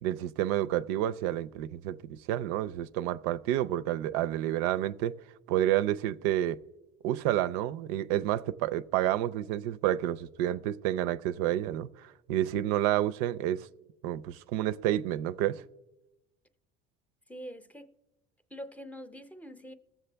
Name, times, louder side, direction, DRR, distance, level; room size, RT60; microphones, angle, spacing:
voice 1, 0.0-5.2 5.5-6.6 7.0-13.7 14.0-15.6, right 13 dB, 90° right, 0.5 m, -29 dB
voice 2, 17.3-17.9 18.5-19.7, equal, 5° left, 0.6 m, -44 dB
21.0 x 7.4 x 3.3 m
cardioid pair, 120°, 20 cm